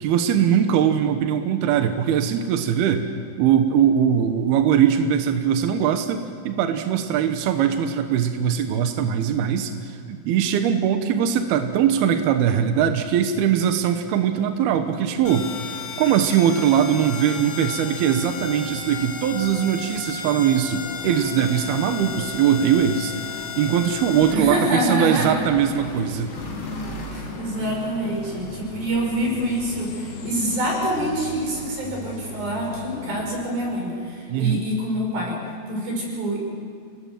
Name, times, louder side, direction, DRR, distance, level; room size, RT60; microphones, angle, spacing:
voice 1, 0.0-3.1 3.4-15.5 16.0-26.3 34.3-34.6, right 9 dB, 75° right, 7 dB, 2.4 m, -21 dB
sound 1, 14.5-33.8, left 4 dB, 85° left, 5.0 m, -41 dB
sound 2, 15.3-24.3, left 6 dB, 50° left, 3.7 m, -34 dB
sound 3, 20.5-33.2, left 1 dB, 35° left, 3.6 m, -40 dB
voice 2, 24.3-25.4 27.1-36.4, equal, 45° right, 0 dB, 7.6 m, -26 dB
28.0 x 20.0 x 7.6 m, 2.3 s
omnidirectional pair, 5.9 m